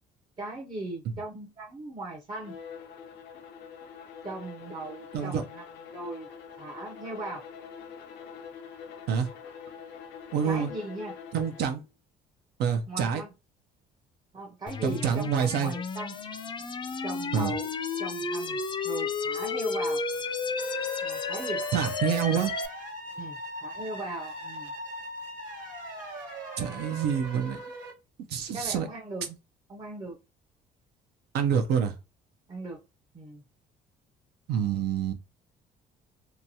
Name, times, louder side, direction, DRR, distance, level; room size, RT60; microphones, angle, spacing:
voice 1, 0.4-2.6 4.2-5.7 5.9-6.3 6.6-7.4 10.4-11.2 12.9-13.3 14.3-16.2 17.0-17.7 18.0-18.6 18.8-20.0 21.0-21.7 23.1-24.7 28.5-29.3 29.7-30.2 32.5-32.8 33.1-33.4, right 2 dB, 25° right, 0.6 m, -38 dB
Bowed string instrument, 2.3-11.8, left 7 dB, 80° left, 0.5 m, -45 dB
voice 2, 10.3-10.7 11.3-11.8 12.6-13.2 14.8-15.7 17.3-17.5 21.7-22.5 26.6-27.6 28.3-28.9 31.3-31.9 34.5-35.1, right 7 dB, 75° right, 0.5 m, -27 dB
sound 1, 14.7-22.7, left 4 dB, 30° left, 0.4 m, -32 dB
sound 2, 20.6-27.9, right 1 dB, 50° right, 1.2 m, -40 dB
2.9 x 2.2 x 2.6 m
cardioid pair, 110°, 17 cm